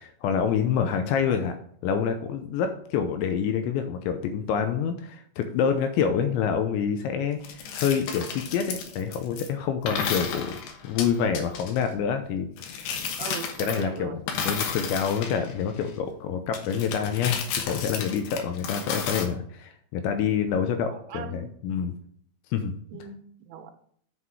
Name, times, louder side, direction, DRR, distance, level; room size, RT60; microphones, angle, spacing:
voice 1, 0.0-1.6 1.8-10.6 10.8-12.9 13.6-21.9 22.5-22.7, left 7 dB, 85° left, 6 dB, 2.7 m, -27 dB
sound 1, 7.4-9.5 9.9-11.8 12.6-14.0 14.3-15.9 16.5-19.3, left 6 dB, 70° left, 2.7 m, -32 dB
voice 2, 13.2-14.2 20.9-21.5 22.9-23.2 23.5-23.7, right 7 dB, 80° right, 6 dB, 3.3 m, -39 dB
8.2 x 5.6 x 4.8 m, 0.64 s
omnidirectional pair, 5.9 m